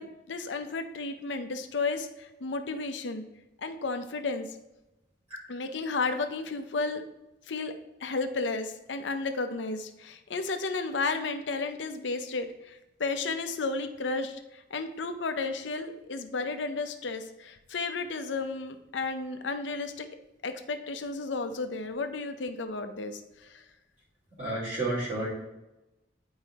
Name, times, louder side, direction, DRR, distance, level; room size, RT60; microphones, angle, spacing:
voice 1, 0.0-3.2 3.6-4.6 5.5-7.0 7.5-7.7 8.0-20.1 20.4-23.6, left 3 dB, 85° left, 7 dB, 0.7 m, -33 dB
voice 2, 24.4-25.3, right 2 dB, 40° right, -10 dB, 2.5 m, -31 dB
9.6 x 4.7 x 2.9 m, 0.98 s
head